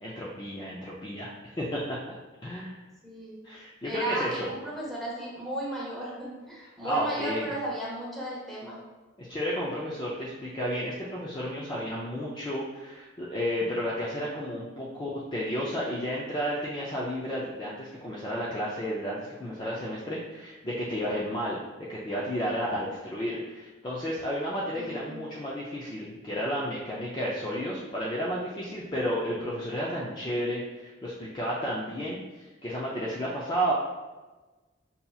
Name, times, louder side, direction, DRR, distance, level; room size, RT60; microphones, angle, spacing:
voice 1, 0.0-2.2 2.4-2.7 3.4-4.5 6.8-7.5 9.2-21.6 21.9-33.7, equal, 20° left, -6 dB, 0.4 m, -32 dB
voice 2, 3.0-3.5 3.8-8.8 24.7-25.3, right 1 dB, ahead, -6 dB, 0.8 m, -35 dB
5.3 x 2.8 x 2.3 m, 1.2 s
head